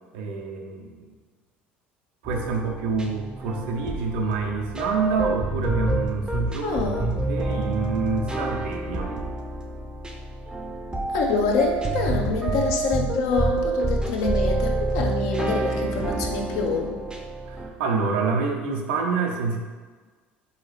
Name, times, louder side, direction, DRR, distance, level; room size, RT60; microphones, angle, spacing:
voice 1, 0.1-1.1 2.2-9.1 17.5-19.6, right 4 dB, 70° right, 2 dB, 0.5 m, -27 dB
sound 1, 2.2-17.7, right 2 dB, 15° right, 0.5 m, -28 dB
voice 2, 6.6-7.1 11.1-16.9, left 4 dB, 65° left, 2 dB, 0.5 m, -26 dB
3.8 x 2.8 x 3.1 m, 1.4 s
hypercardioid pair, 65°, 6 cm